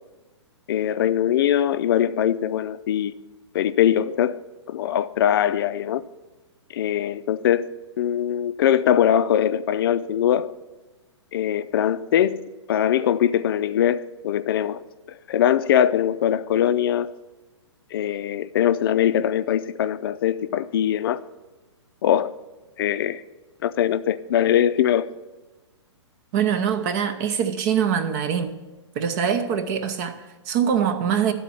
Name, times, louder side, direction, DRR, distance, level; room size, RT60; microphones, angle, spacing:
voice 1, 0.7-3.1 3.5-6.0 6.7-10.5 11.3-14.8 15.3-17.1 17.9-21.2 22.0-22.3 22.8-23.2 23.6-25.1, left 10 dB, 50° left, 0.4 m, -22 dB
voice 2, 26.3-28.6 28.9-31.3, right 8 dB, 35° right, 0.7 m, -23 dB
12.5 x 4.2 x 7.1 m
hypercardioid pair, 125°, 15 cm